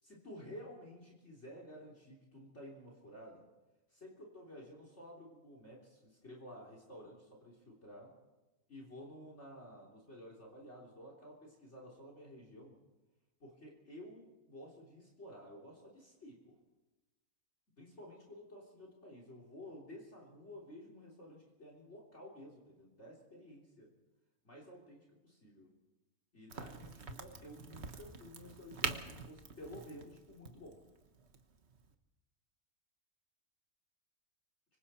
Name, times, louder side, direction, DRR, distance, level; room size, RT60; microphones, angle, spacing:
voice 1, 0.0-3.4 3.9-8.1 8.7-12.8 13.4-16.5 17.8-23.9 24.4-25.7 26.3-30.8, left 1 dB, 50° left, -1 dB, 3.7 m, -53 dB
Crack, 26.5-31.9, right 5 dB, 50° right, 1.5 m, -44 dB
25.5 x 25.0 x 4.4 m, 1.1 s
omnidirectional pair, 1.5 m